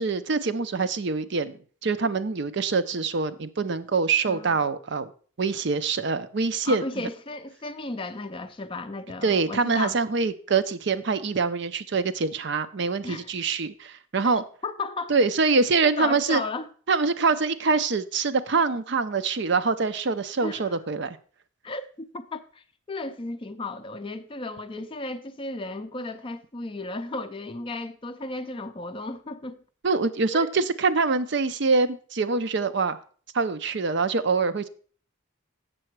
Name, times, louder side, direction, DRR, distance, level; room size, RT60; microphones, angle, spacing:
voice 1, 0.0-1.6 1.8-5.1 5.4-6.8 9.2-14.4 15.1-16.4 16.9-21.2 29.8-33.0 33.3-34.7, right 4 dB, 55° right, 0.5 m, -24 dB
voice 2, 6.6-10.0 13.0-13.3 14.3-15.1 15.8-16.7 20.4-20.8 21.6-29.6 30.3-30.5, left 3 dB, 25° left, 0.4 m, -34 dB
7.6 x 6.8 x 4.6 m
head